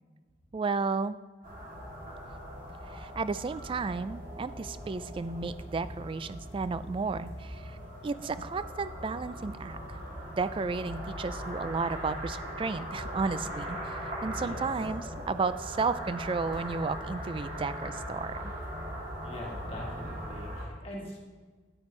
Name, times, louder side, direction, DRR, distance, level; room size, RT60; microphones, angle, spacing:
voice 1, 0.5-1.2 2.9-7.8 8.0-10.0 10.4-18.5, right 4 dB, 30° right, 14 dB, 0.3 m, -33 dB
sound 1, 1.4-20.6, equal, 50° right, 2.8 m, -40 dB
voice 2, 19.2-21.2, equal, 35° left, -2 dB, 1.9 m, -42 dB
9.8 x 9.5 x 3.2 m, 1.4 s
head